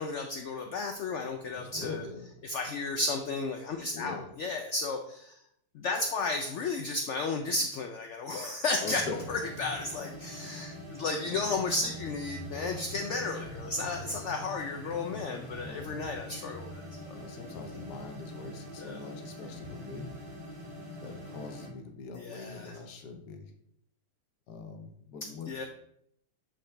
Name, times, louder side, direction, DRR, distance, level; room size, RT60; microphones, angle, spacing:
voice 1, 0.0-2.0 2.4-5.4 5.7-17.2 18.8-19.0 22.2-22.7 25.5-25.6, left 3 dB, 90° left, 4 dB, 0.6 m, -33 dB
voice 2, 1.5-2.3 3.9-4.3 8.8-9.2 15.6-16.0 17.1-20.1 21.0-23.5 24.5-25.6, left 4 dB, 70° left, 5 dB, 1.3 m, -42 dB
sound 1, 8.8-21.7, left 1 dB, 40° right, 2.2 m, -43 dB
7.9 x 3.7 x 3.3 m, 0.74 s
omnidirectional pair, 1.8 m